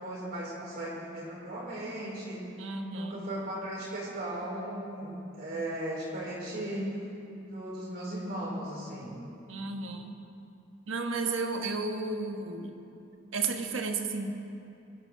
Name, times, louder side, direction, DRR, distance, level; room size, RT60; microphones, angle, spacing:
voice 1, 0.0-2.4 2.9-7.1 7.5-9.1, right 1 dB, 50° right, -4 dB, 4.3 m, -37 dB
voice 2, 2.6-3.2 9.5-10.1 10.9-12.8 13.3-14.4, right 4 dB, 80° right, 4 dB, 1.3 m, -33 dB
20.0 x 13.0 x 3.9 m, 2.7 s
head